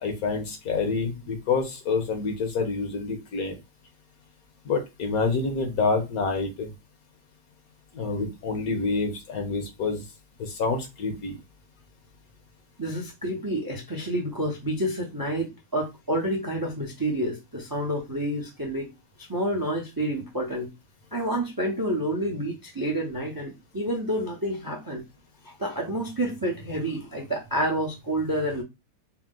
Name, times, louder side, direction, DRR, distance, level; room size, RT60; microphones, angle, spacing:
voice 1, 0.0-3.6 4.6-6.7 7.9-10.0 10.4-11.4, left 4 dB, 65° left, 1.4 m, -27 dB
voice 2, 12.8-18.9 19.3-20.7 21.1-25.0 25.4-28.6, right 1 dB, 20° right, 0.5 m, -29 dB
4.6 x 2.1 x 3.7 m
omnidirectional pair, 1.8 m